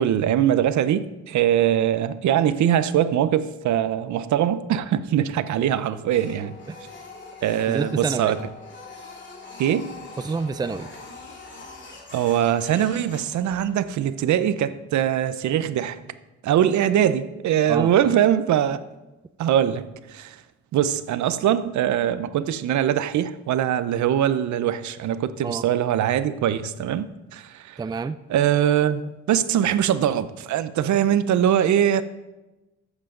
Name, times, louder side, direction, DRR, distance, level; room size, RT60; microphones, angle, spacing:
voice 1, 0.0-6.5 7.4-8.4 9.6-9.9 12.1-16.0 16.4-18.8 19.4-20.4 20.7-27.8 28.3-29.0 29.3-32.0, right 10 dB, 70° right, 0.7 m, -22 dB
Printer, 6.1-14.0, left 3 dB, 40° left, 2.9 m, -43 dB
voice 2, 7.7-8.3 10.2-10.9 17.7-18.1 25.4-25.6 27.8-28.2, right 4 dB, 15° right, 0.4 m, -28 dB
14.5 x 8.1 x 3.8 m
cardioid pair, 90°, 30 cm